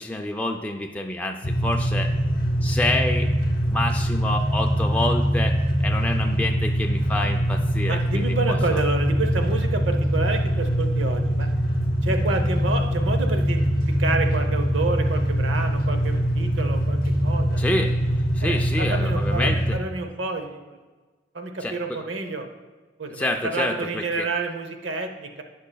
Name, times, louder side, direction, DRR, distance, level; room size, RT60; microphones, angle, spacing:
voice 1, 0.0-2.1 2.6-3.3 3.7-5.5 5.8-8.8 17.6-18.0 18.3-19.8 21.6-22.0 23.1-24.3, left 1 dB, 10° left, 2 dB, 0.3 m, -28 dB
sound 1, 1.4-19.8, equal, 45° left, 1.0 m, -23 dB
voice 2, 7.9-11.5 12.0-17.6 18.4-20.8 21.3-22.5 23.0-25.4, right 3 dB, 75° right, 6 dB, 0.8 m, -29 dB
15.0 x 5.6 x 2.3 m, 1.3 s
head